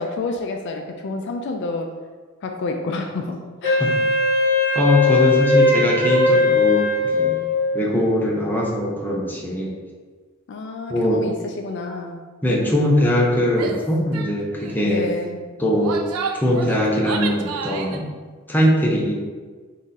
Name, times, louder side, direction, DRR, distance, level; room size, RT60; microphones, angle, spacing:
voice 1, 0.0-1.9 2.4-3.9 10.5-12.2 14.8-15.4, left 3 dB, 55° left, 4 dB, 0.3 m, -29 dB
Wind instrument woodwind instrument, 3.6-7.9, left 3 dB, 45° right, 1.1 m, -19 dB
voice 2, 4.7-7.3 7.7-9.8 10.9-11.2 12.4-15.1 15.6-16.0 16.3-18.0 18.5-19.1, equal, 10° left, -2 dB, 0.6 m, -21 dB
Female speech woman speaking / Yell, 13.5-13.8 14.1-14.3 14.6-14.9 15.6-18.0, right 5 dB, 90° right, 0.4 m, -31 dB
3.6 x 2.6 x 3.9 m, 1.4 s
head